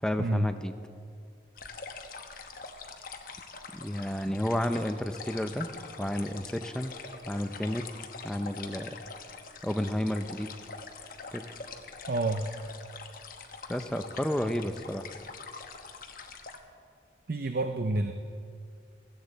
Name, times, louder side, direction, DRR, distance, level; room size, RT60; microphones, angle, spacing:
voice 1, 0.0-0.7 3.7-5.7 6.0-6.9 7.3-7.8 8.2-8.9 9.6-10.5 11.3-11.4 13.7-15.0, equal, 5° left, 8 dB, 0.5 m, -31 dB
sound 1, 1.6-16.6, left 4 dB, 50° left, 1.0 m, -44 dB
voice 2, 12.1-12.5 17.3-18.1, right 2 dB, 55° right, 6 dB, 0.6 m, -29 dB
16.5 x 15.0 x 4.1 m, 2.3 s
head